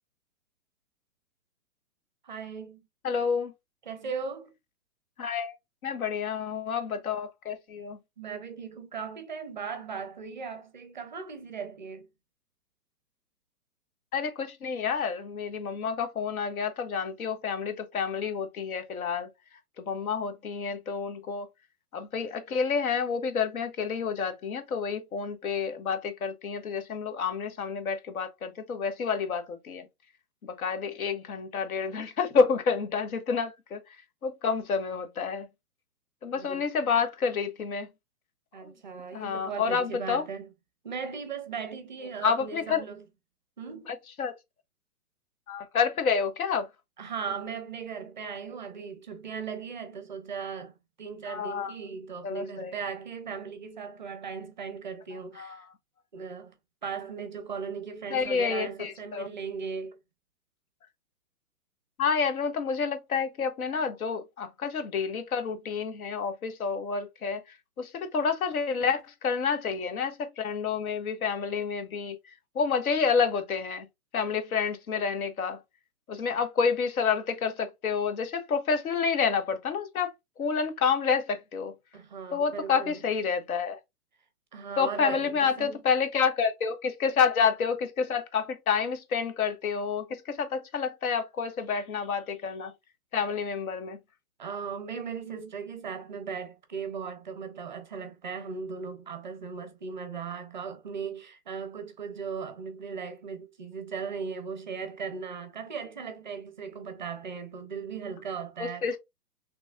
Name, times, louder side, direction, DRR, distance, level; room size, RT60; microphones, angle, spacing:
voice 1, 2.2-2.9 3.8-4.5 8.2-12.1 36.3-36.7 38.5-40.5 40.8-43.1 43.6-43.9 47.0-55.7 56.1-56.5 56.8-60.0 81.9-83.0 84.5-85.8 94.4-109.0, right 6 dB, 30° right, 0.5 m, -38 dB
voice 2, 3.0-3.5 5.2-5.5 5.8-8.0 14.1-19.3 19.8-21.5 21.9-29.9 30.4-33.8 34.2-35.5 36.2-37.9 39.1-40.2 42.2-42.8 44.2-44.3 45.5-46.7 51.3-51.7 52.2-52.7 55.4-55.5 58.1-59.3 62.0-67.4 67.8-72.2 72.5-73.9 74.1-75.6 76.1-80.1 80.4-81.7 82.3-83.8 84.8-92.7 93.1-94.0 108.6-109.0, left 6 dB, 65° left, 1.3 m, -29 dB
5.7 x 3.2 x 2.3 m
hypercardioid pair, 170°, 47 cm